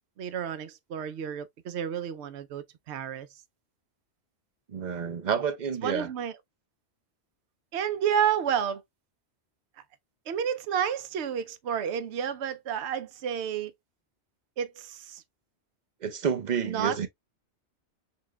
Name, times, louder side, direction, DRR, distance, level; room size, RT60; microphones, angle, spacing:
voice 1, 0.2-3.3 5.8-6.3 7.7-8.8 10.3-13.7 14.6-15.2 16.6-17.1, right 8 dB, 75° right, 0.9 m, -30 dB
voice 2, 4.7-6.1 16.0-17.1, right 7 dB, 45° right, 0.8 m, -29 dB
5.7 x 2.3 x 3.1 m
omnidirectional pair, 1.1 m